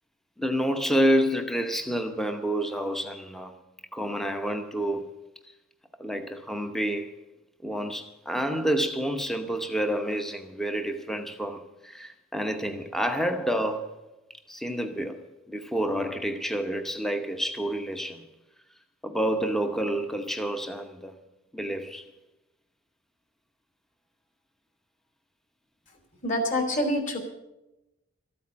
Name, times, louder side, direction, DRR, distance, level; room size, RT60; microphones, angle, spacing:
voice 1, 0.4-3.5 3.9-5.2 6.0-7.1 7.6-14.0 14.5-18.2 19.0-21.1 21.5-22.1 26.6-26.9, right 1 dB, ahead, 0.8 m, -29 dB
voice 2, 26.2-27.2, left 1 dB, 35° left, 2.8 m, -26 dB
13.5 x 8.7 x 8.6 m
head